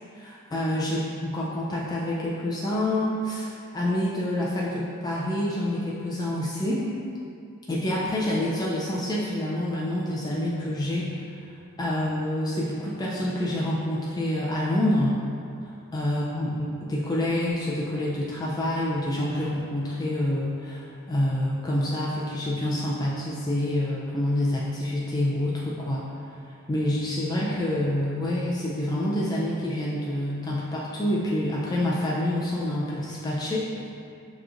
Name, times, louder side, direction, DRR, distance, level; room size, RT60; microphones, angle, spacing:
voice 1, 0.1-6.9 7.7-11.3 11.8-15.2 15.6-26.1 26.5-33.8, left 1 dB, 20° left, -6 dB, 0.4 m, -27 dB
7.1 x 3.0 x 2.5 m, 2.5 s
head